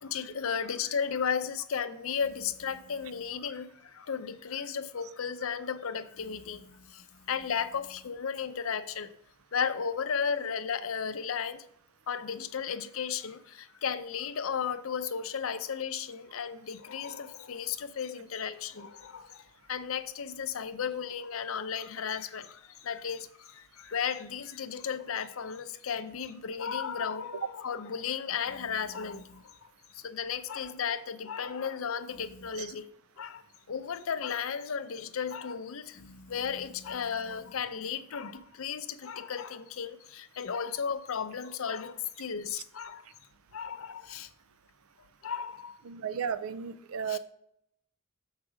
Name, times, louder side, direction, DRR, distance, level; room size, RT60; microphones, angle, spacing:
voice 1, 0.0-9.1 9.5-11.6 12.1-32.9 33.2-33.4 33.7-43.1 43.5-44.3 45.2-45.7 47.1-47.2, left 7 dB, 70° left, 0.5 m, -34 dB
voice 2, 45.8-47.2, right 7 dB, 75° right, 0.4 m, -34 dB
7.4 x 4.8 x 4.9 m
head